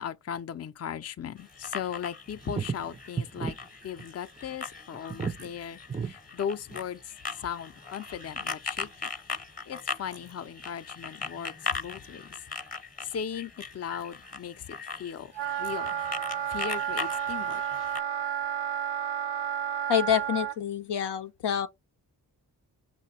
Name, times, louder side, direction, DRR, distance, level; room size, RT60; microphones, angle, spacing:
voice 1, 0.0-3.6 3.8-9.1 9.7-12.4 13.0-15.3 15.6-15.9 16.5-17.6, left 8 dB, 40° left, 0.5 m, -37 dB
sound 1, 1.4-18.0, left 4 dB, 20° left, 0.8 m, -40 dB
sound 2, 1.9-2.0 2.4-3.6 3.8-4.0 4.4-4.5 4.9-5.5 5.9-6.1 6.7-6.8, right 6 dB, 15° right, 0.3 m, -33 dB
Wind instrument woodwind instrument, 15.3-20.6, right 9 dB, 85° right, 0.8 m, -31 dB
voice 2, 19.9-21.7, left 9 dB, 85° left, 0.6 m, -27 dB
5.8 x 2.2 x 4.1 m
cardioid pair, 45°, 40 cm